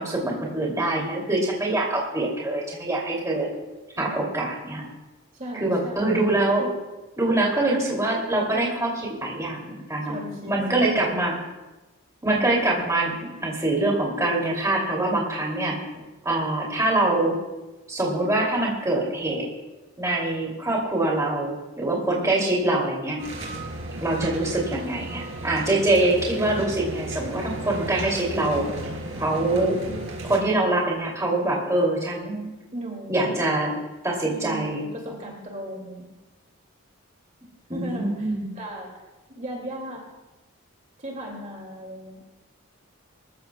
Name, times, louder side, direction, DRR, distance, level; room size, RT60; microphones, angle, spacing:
voice 1, 0.0-3.5 4.0-4.9 5.5-6.7 7.2-10.2 10.5-11.4 12.2-13.1 13.4-15.8 16.2-17.3 17.9-19.5 20.0-23.2 24.0-28.7 29.2-29.8 30.2-32.5 33.1-33.7 34.0-34.9 37.7-38.5, right 2 dB, 15° right, -3 dB, 2.7 m, -24 dB
voice 2, 5.3-6.2 10.1-11.1 15.9-16.0 29.4-30.1 32.7-33.5 34.2-36.0 37.7-39.0 39.3-40.0 41.0-42.3, right 1 dB, 35° right, -1 dB, 2.4 m, -37 dB
sound 1, 23.2-30.4, right 1 dB, 60° right, 3.1 m, -34 dB
24.0 x 14.5 x 2.3 m, 1.1 s
head